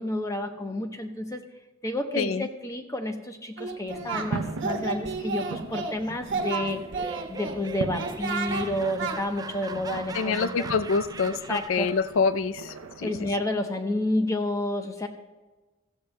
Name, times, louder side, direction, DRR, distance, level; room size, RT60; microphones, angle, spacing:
voice 1, 0.0-1.4 1.8-6.8 7.3-10.7 11.3-11.9 13.0-15.1, left 1 dB, 15° left, 5 dB, 0.8 m, -30 dB
voice 2, 2.2-2.5 10.1-13.3, left 5 dB, 65° left, 13 dB, 0.4 m, -26 dB
Singing, 3.6-4.3 4.6-6.0 6.3-7.5 8.0-8.7 9.0-9.2, right 4 dB, 55° right, 1.3 m, -31 dB
sound 1, 3.9-13.4, right 3 dB, 80° right, 0.6 m, -39 dB
Laughter, 6.7-12.2, right 4 dB, 15° right, 0.4 m, -41 dB
16.5 x 14.5 x 2.2 m, 1.2 s
head